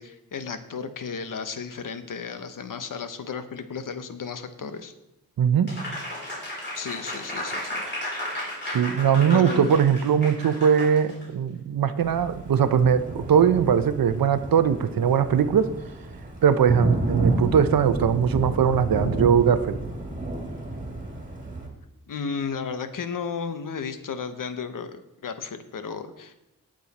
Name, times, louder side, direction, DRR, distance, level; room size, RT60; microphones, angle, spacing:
voice 1, 0.0-4.9 6.7-7.8 9.3-9.9 22.1-26.3, left 6 dB, 60° left, 9 dB, 1.0 m, -34 dB
voice 2, 5.4-5.7 8.7-15.7 16.4-19.8, right 8 dB, 70° right, 11 dB, 0.8 m, -20 dB
Applause, 5.7-11.2, left 1 dB, 30° left, 4.4 m, -34 dB
Thunder, 12.0-21.7, right 1 dB, 20° right, 2.1 m, -31 dB
17.0 x 6.4 x 4.2 m, 0.89 s
wide cardioid pair, 145°, 36 cm